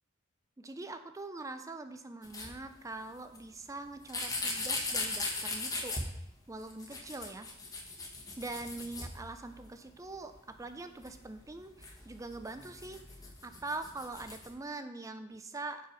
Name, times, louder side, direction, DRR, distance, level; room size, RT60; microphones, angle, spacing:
voice 1, 0.6-6.2 6.5-7.5 8.4-15.8, right 2 dB, 15° right, 8 dB, 0.4 m, -43 dB
sound 1, 2.2-2.5 3.3-3.4 4.1-6.0 6.6-9.7 10.0-10.1 10.3-10.4 11.0-14.5, left 3 dB, 20° left, 1.1 m, -39 dB
5.9 x 5.5 x 4.7 m, 0.80 s
head